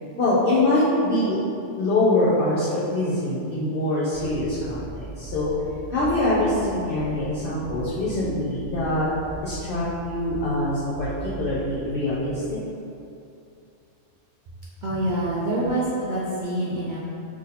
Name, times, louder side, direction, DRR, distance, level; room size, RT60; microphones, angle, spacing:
voice 1, 0.2-1.4 1.8-5.5 5.9-9.1 9.4-12.6 14.9-15.1, left 1 dB, 55° left, -9 dB, 0.7 m, -24 dB
sound 1, 4.1-12.6, right 2 dB, 85° right, 1.0 m, -39 dB
voice 2, 14.8-17.0, right 1 dB, 70° right, -6 dB, 0.4 m, -26 dB
2.7 x 2.6 x 4.0 m, 2.7 s
omnidirectional pair, 1.3 m